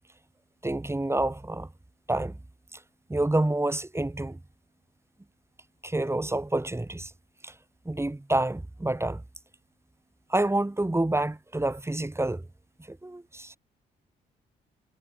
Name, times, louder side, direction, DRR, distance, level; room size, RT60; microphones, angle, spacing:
voice 1, 0.6-1.7 2.1-2.4 2.7-2.8 3.1-4.4 5.8-7.1 7.4-7.5 7.9-9.2 10.3-12.5 12.9-13.6, right 2 dB, 10° right, 2.3 m, -28 dB
hypercardioid pair, 50°, 20 cm